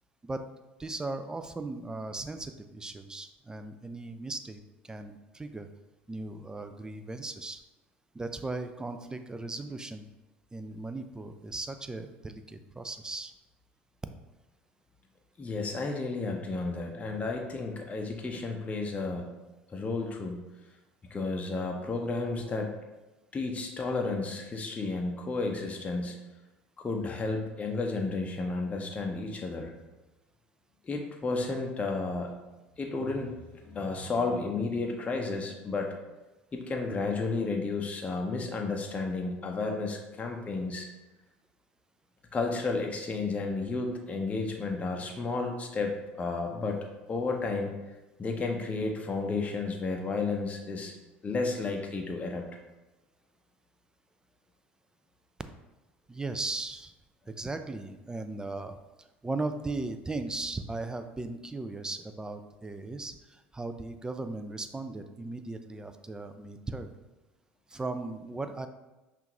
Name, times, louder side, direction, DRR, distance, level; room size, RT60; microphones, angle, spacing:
voice 1, 0.8-5.7 6.1-7.6 8.1-10.1 10.5-13.3 56.1-56.9 57.3-66.9 67.7-68.7, right 2 dB, 15° right, 9 dB, 0.4 m, -37 dB
voice 2, 15.4-19.3 19.7-20.4 21.1-22.7 23.3-26.2 26.8-29.7 30.8-32.3 32.8-33.4 33.6-35.9 36.5-40.9 42.3-47.7 48.2-50.9 51.2-52.5, left 3 dB, 25° left, 1 dB, 0.6 m, -32 dB
5.6 x 2.5 x 3.0 m, 1.1 s
hypercardioid pair, 75°, 6 cm